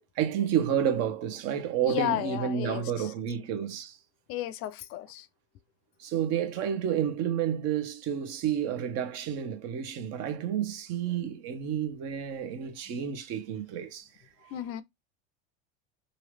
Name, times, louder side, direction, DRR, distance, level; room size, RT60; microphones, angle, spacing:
voice 1, 0.2-4.0 6.0-14.1 14.4-14.5, right 9 dB, 55° right, 1.0 m, -30 dB
voice 2, 1.8-3.1 4.3-5.3 12.9-13.0 14.5-14.8, left 13 dB, 50° left, 0.5 m, -33 dB
2.8 x 2.6 x 3.2 m
hypercardioid pair, 100°, 30 cm